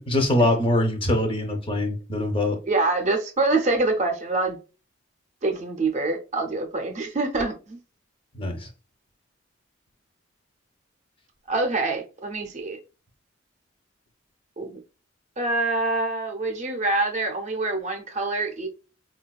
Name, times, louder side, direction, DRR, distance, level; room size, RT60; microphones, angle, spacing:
voice 1, 0.0-2.6 8.3-8.7, left 1 dB, 25° left, 0.5 m, -23 dB
voice 2, 2.6-4.6 5.4-7.8 11.5-12.8 14.6-14.8 15.4-18.7, right 2 dB, 35° right, 0.5 m, -25 dB
3.9 x 2.2 x 2.3 m
head